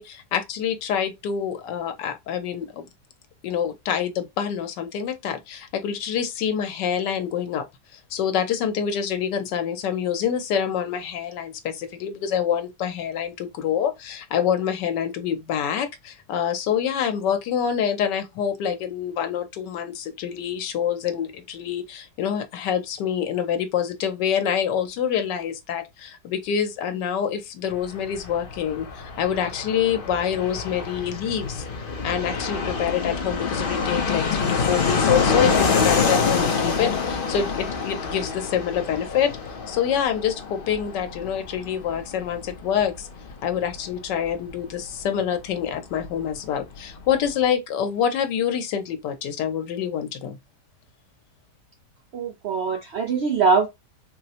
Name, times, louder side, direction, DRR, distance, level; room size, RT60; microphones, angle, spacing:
voice 1, 0.0-2.9 3.4-7.7 7.9-31.6 32.0-39.4 39.7-43.1 43.4-50.4, left 8 dB, 90° left, 1.3 m, -26 dB
Fixed-wing aircraft airplane, 27.7-46.1 46.3-46.4 46.6-47.3, left 5 dB, 50° left, 0.7 m, -27 dB
voice 2, 52.1-53.7, right 5 dB, 75° right, 0.6 m, -22 dB
4.0 x 2.0 x 2.8 m
omnidirectional pair, 1.8 m